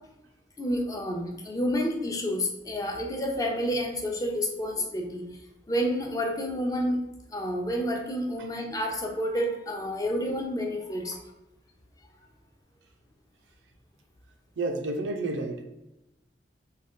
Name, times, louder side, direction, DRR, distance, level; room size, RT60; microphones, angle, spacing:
voice 1, 0.6-5.3 5.7-7.0 7.3-11.2, equal, 20° left, 1 dB, 0.5 m, -29 dB
voice 2, 14.6-15.6, right 2 dB, 90° right, 5 dB, 0.5 m, -30 dB
3.6 x 2.3 x 3.6 m, 0.96 s
head